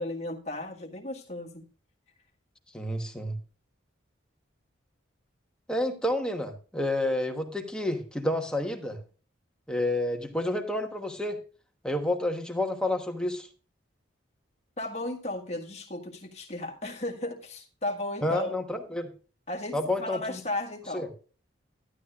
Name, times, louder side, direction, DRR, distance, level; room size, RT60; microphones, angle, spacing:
voice 1, 0.0-1.6 14.8-18.5 19.5-21.1, left 2 dB, 35° left, 1 dB, 1.6 m, -35 dB
voice 2, 2.7-3.3 5.7-9.0 9.7-11.4 11.8-13.5 18.2-19.1 19.7-20.4 20.9-21.1, left 1 dB, 5° left, 3 dB, 1.1 m, -29 dB
12.0 x 11.0 x 2.5 m, 0.37 s
head